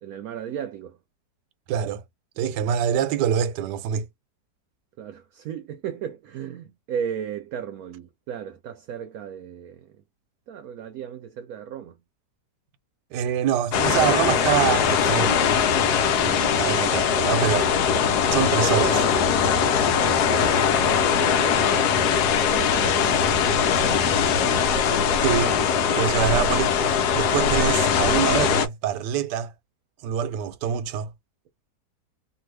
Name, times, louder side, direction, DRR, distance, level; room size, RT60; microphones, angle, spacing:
voice 1, 0.0-1.0 5.0-9.9 10.5-12.0 20.0-22.0 22.5-24.7, right 8 dB, 70° right, 0.9 m, -36 dB
voice 2, 1.7-2.0 2.4-4.1 13.1-15.5 16.2-17.7 18.3-19.0 25.2-25.5 26.0-29.5 30.0-31.1, right 9 dB, 90° right, 1.2 m, -25 dB
sound 1, 13.7-28.7, left 7 dB, 75° left, 1.2 m, -21 dB
2.7 x 2.6 x 3.1 m
omnidirectional pair, 1.8 m